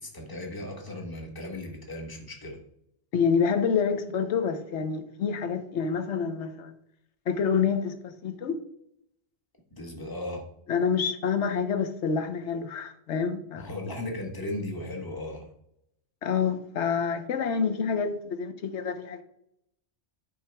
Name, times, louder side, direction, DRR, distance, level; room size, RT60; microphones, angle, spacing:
voice 1, 0.0-2.6 9.7-10.4 13.5-15.5, left 1 dB, 20° left, 1.3 m, -36 dB
voice 2, 3.1-6.7 7.3-8.6 10.7-13.7 16.2-19.2, left 6 dB, 90° left, 1.1 m, -27 dB
8.7 x 5.5 x 3.4 m
omnidirectional pair, 1.2 m